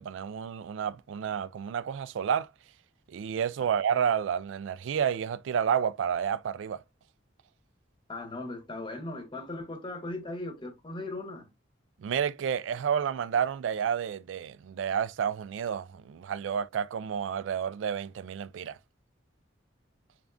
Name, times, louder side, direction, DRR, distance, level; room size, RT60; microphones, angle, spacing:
voice 1, 0.0-2.5 3.1-6.8 12.0-18.8, right 8 dB, 75° right, 0.3 m, -30 dB
voice 2, 8.1-11.4, left 2 dB, 25° left, 0.9 m, -38 dB
3.5 x 3.5 x 2.5 m
head